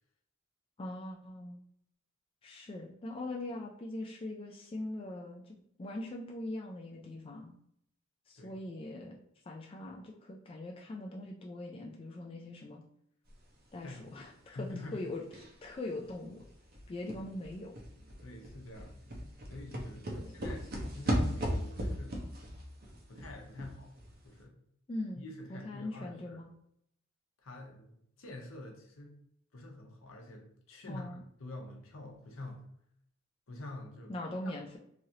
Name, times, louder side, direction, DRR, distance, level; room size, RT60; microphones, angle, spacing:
voice 1, 0.8-1.6 2.4-7.5 8.3-9.2 9.4-12.8 13.7-14.7 14.9-15.2 15.6-16.4 16.9-17.7 20.1-20.4 24.9-25.2 25.5-26.5 30.9-31.2 34.1-34.8, left 1 dB, 25° left, 0 dB, 0.3 m, -41 dB
voice 2, 14.5-15.0 17.2-17.3 18.2-19.0 19.5-22.2 23.1-23.9 24.2-24.6 25.2-26.4 27.4-29.2 29.5-32.6 33.5-34.1, left 2 dB, 75° left, 1 dB, 0.8 m, -46 dB
sound 1, 15.3-15.7 16.0-16.1 16.4-24.1 24.4-24.5, equal, 45° right, 0.7 m, -37 dB
3.0 x 2.5 x 2.8 m, 0.71 s
head